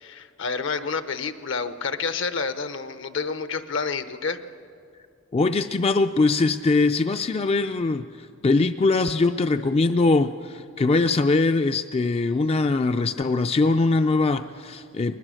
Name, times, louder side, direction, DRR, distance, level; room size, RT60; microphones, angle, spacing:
voice 1, 0.0-4.4, left 5 dB, 70° left, 11 dB, 0.9 m, -29 dB
voice 2, 5.3-15.2, left 3 dB, 30° left, 9 dB, 0.4 m, -22 dB
21.5 x 20.5 x 6.4 m, 2.3 s
head